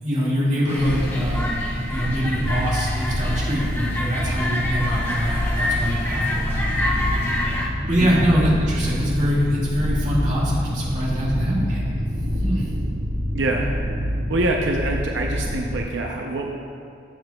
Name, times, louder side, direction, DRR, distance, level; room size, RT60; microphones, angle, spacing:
voice 1, 0.0-7.2 7.9-11.8 12.4-12.7, equal, 35° right, -7 dB, 2.1 m, -24 dB
sound 1, 0.7-7.7, left 1 dB, 10° left, 0.7 m, -28 dB
sound 2, 0.8-15.8, equal, 90° right, 1.4 m, -26 dB
voice 2, 8.0-8.3 13.3-13.7 14.3-16.5, right 2 dB, 70° right, 1 dB, 0.6 m, -25 dB
13.5 x 7.7 x 2.3 m, 2.3 s
head